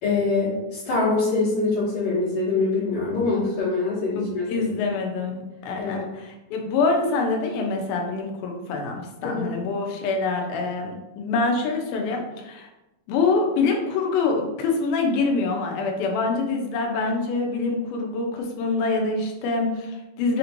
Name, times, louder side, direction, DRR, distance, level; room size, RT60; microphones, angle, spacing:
voice 1, 0.0-4.6 5.7-6.1 9.2-9.5, left 3 dB, 60° left, -11 dB, 2.5 m, -24 dB
voice 2, 4.1-12.7 13.1-20.4, left 3 dB, 80° left, 1 dB, 2.5 m, -25 dB
5.8 x 3.0 x 2.6 m, 0.98 s
omnidirectional pair, 4.4 m